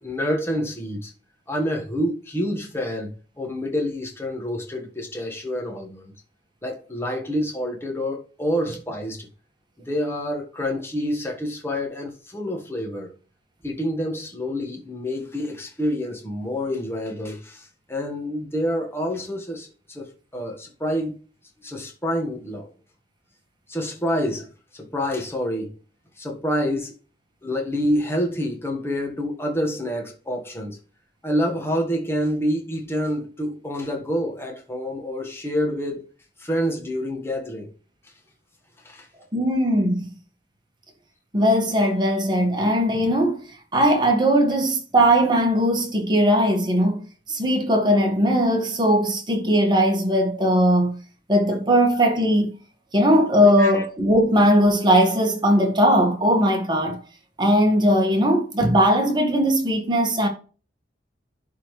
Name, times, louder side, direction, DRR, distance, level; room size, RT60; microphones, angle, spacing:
voice 1, 0.0-1.1 1.5-3.1 3.4-6.1 6.6-9.3 9.8-13.1 13.6-21.2 21.6-22.7 23.7-24.5 24.7-25.7 26.2-26.9 27.4-30.8 31.2-36.1 36.4-37.7 38.8-39.1 53.6-53.8, equal, 15° left, 1.4 m, -27 dB
voice 2, 39.3-40.1 41.3-43.4 43.7-51.0 51.3-52.5 52.9-57.0 57.4-60.3, equal, 25° right, 1.5 m, -19 dB
11.0 x 3.8 x 3.2 m
head